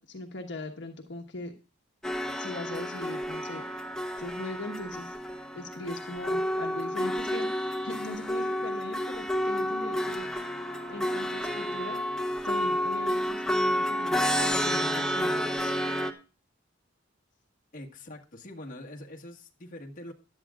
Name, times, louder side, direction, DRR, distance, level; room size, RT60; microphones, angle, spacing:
voice 1, 0.0-1.5 2.4-3.9 4.2-5.2 5.5-10.3 10.9-15.7, left 2 dB, 65° left, 1.3 m, -40 dB
sound 1, 2.0-16.1, equal, 5° left, 0.9 m, -30 dB
voice 2, 17.7-20.1, left 1 dB, 45° left, 1.7 m, -44 dB
16.0 x 11.5 x 2.4 m
head